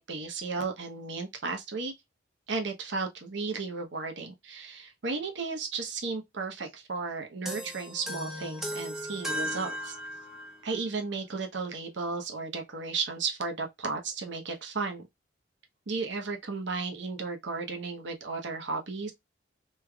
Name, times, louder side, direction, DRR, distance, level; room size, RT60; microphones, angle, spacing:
voice 1, 0.0-1.9 2.5-10.0 10.6-15.0 15.9-19.1, right 4 dB, 65° right, 0.9 m, -34 dB
sound 1, 7.5-10.7, equal, ahead, 0.7 m, -36 dB
3.2 x 3.1 x 2.3 m
head